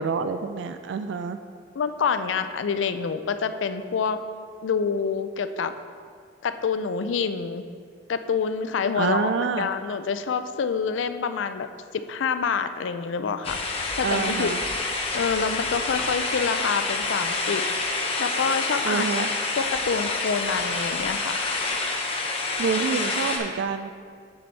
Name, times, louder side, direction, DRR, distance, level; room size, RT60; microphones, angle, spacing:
voice 1, 0.0-1.4 9.0-9.7 14.0-14.6 18.8-19.3 22.6-23.9, right 5 dB, 65° right, 9 dB, 0.3 m, -27 dB
voice 2, 1.7-4.2 4.6-5.7 6.4-7.6 8.1-11.7 12.1-14.5 15.1-17.6 18.2-19.1 19.6-21.4, left 6 dB, 75° left, 10 dB, 0.4 m, -27 dB
sound 1, 13.4-23.4, left 3 dB, 30° left, 0.9 m, -27 dB
7.5 x 6.9 x 4.1 m, 2.1 s
head